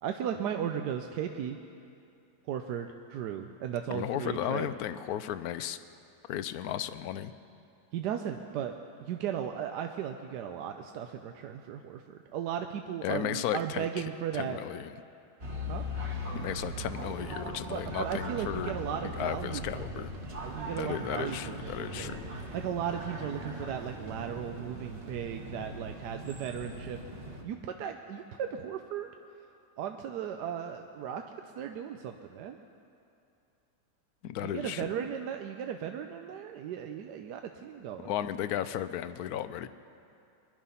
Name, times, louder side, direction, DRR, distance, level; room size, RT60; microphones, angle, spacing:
voice 1, 0.0-1.6 2.5-4.7 7.9-14.6 15.7-15.8 17.7-20.0 20.4-21.7 22.0-22.1 22.5-27.0 27.4-29.1 29.8-31.2 31.6-32.6 34.4-38.1, right 9 dB, 75° right, 5 dB, 1.2 m, -36 dB
voice 2, 3.9-5.8 6.3-7.3 13.0-13.9 14.3-14.9 16.3-18.7 19.2-20.1 20.8-22.2 34.2-34.9 38.0-39.7, left 11 dB, 70° left, 13 dB, 1.0 m, -34 dB
sound 1, 15.4-27.4, equal, 35° right, 1.6 m, -39 dB
22.5 x 11.0 x 5.6 m, 2.6 s
omnidirectional pair, 1.9 m